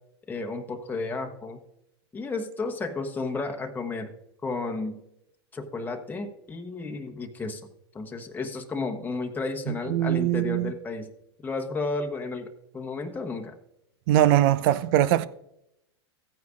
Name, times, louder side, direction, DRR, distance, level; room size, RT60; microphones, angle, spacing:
voice 1, 0.3-1.6 2.1-4.1 4.4-5.0 5.5-7.6 7.9-11.1 11.4-13.5, left 3 dB, 15° left, 1.0 m, -32 dB
voice 2, 9.7-10.7 14.1-15.3, right 13 dB, 60° right, 0.6 m, -22 dB
14.5 x 9.3 x 2.5 m
hypercardioid pair, 100°, 14 cm